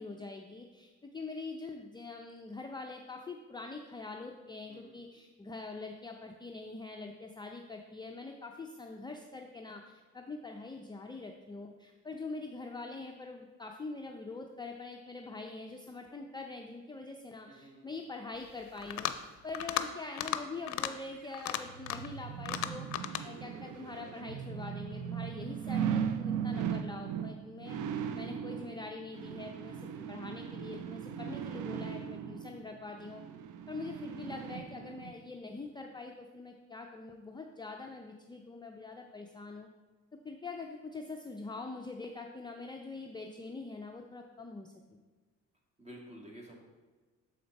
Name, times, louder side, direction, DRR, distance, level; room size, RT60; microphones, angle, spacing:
voice 1, 0.0-22.9 23.2-27.8 28.1-33.2 33.7-39.7 40.1-45.0, left 3 dB, 15° left, 2 dB, 0.5 m, -44 dB
voice 2, 4.7-5.1 17.4-18.0 45.8-46.5, equal, 20° right, -1 dB, 1.9 m, -51 dB
sound 1, 18.8-19.2 19.5-19.9 20.1-20.4 20.7-20.9 21.3-22.1 22.5-23.2, left 12 dB, 70° left, 0.5 m, -34 dB
sound 2, 21.2-35.1 35.6-35.7, right 8 dB, 80° right, 0.5 m, -38 dB
7.1 x 5.0 x 4.0 m, 1.3 s
cardioid pair, 90°, 30 cm